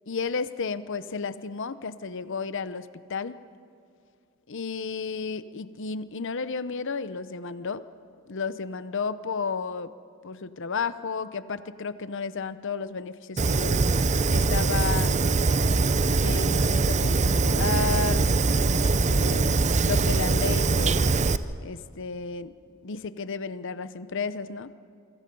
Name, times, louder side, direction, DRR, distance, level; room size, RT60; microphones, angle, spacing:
voice 1, 0.1-3.4 4.5-7.8 8.3-9.9 10.2-13.8 14.3-15.3 16.2-18.4 18.7-21.0 21.6-22.6 22.8-24.7, left 5 dB, 60° left, 13 dB, 0.8 m, -32 dB
Fire, 13.4-21.4, right 3 dB, 35° right, 0.6 m, -22 dB
28.0 x 24.5 x 5.4 m, 2.4 s
head